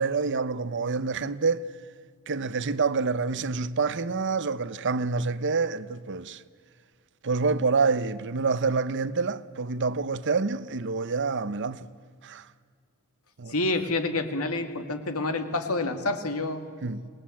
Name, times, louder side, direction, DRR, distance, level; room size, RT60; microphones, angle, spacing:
voice 1, 0.0-1.7 2.3-6.4 7.2-11.9 12.2-12.5 13.4-13.5 16.8-17.1, right 4 dB, 55° right, 0.8 m, -27 dB
voice 2, 13.5-16.6, left 2 dB, 85° left, 2.2 m, -28 dB
26.5 x 19.5 x 8.6 m
head